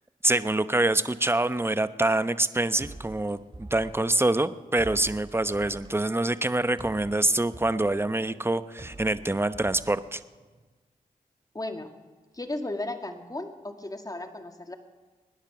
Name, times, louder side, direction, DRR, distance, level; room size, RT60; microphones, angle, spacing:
voice 1, 0.2-10.2, right 2 dB, 15° right, 13 dB, 0.9 m, -25 dB
sound 1, 2.8-10.7, right 2 dB, 30° right, 3.0 m, -46 dB
voice 2, 11.5-11.9 12.3-14.8, left 2 dB, 25° left, 6 dB, 2.0 m, -35 dB
21.0 x 10.0 x 6.2 m, 1.3 s
cardioid pair, 40°, 15 cm